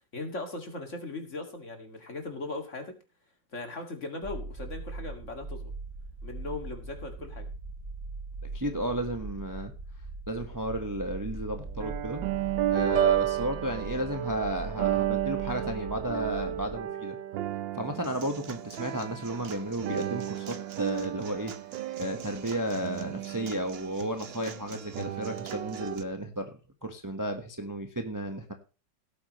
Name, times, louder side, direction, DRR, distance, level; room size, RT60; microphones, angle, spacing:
voice 1, 0.1-3.0 3.5-5.7 6.2-7.5, left 2 dB, 40° left, 5 dB, 2.6 m, -38 dB
sound 1, 4.2-16.8, right 3 dB, 65° right, 3.5 m, -41 dB
voice 2, 8.5-9.7 10.3-12.2 12.7-17.2 17.7-21.5 22.0-26.5 26.8-28.5, right 1 dB, 10° right, 5 dB, 1.1 m, -33 dB
sound 2, 11.6-24.4 24.9-26.0, right 13 dB, 80° right, 1.4 m, -32 dB
Human voice / Acoustic guitar / Drum, 18.0-26.0, right 8 dB, 50° right, 0.8 m, -45 dB
17.5 x 8.6 x 3.1 m, 0.32 s
omnidirectional pair, 2.0 m